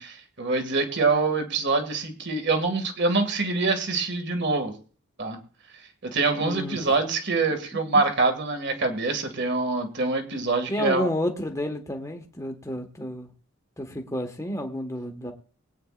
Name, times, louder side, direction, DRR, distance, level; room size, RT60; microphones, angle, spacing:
voice 1, 0.0-4.7 5.2-5.4 6.1-11.1, right 3 dB, 50° right, 6 dB, 2.1 m, -25 dB
voice 2, 6.4-6.8 10.7-13.3 13.8-15.3, left 1 dB, 15° left, 3 dB, 1.5 m, -30 dB
22.5 x 9.1 x 2.5 m, 0.41 s
head